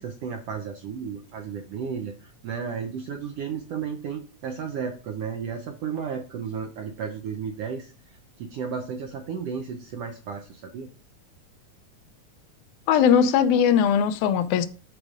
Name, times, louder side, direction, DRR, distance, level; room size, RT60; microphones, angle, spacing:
voice 1, 0.0-2.1 2.4-7.9 8.4-10.9, right 6 dB, 75° right, 1.4 m, -33 dB
voice 2, 12.9-14.7, left 8 dB, 85° left, 2.0 m, -19 dB
12.0 x 4.9 x 2.5 m
omnidirectional pair, 3.4 m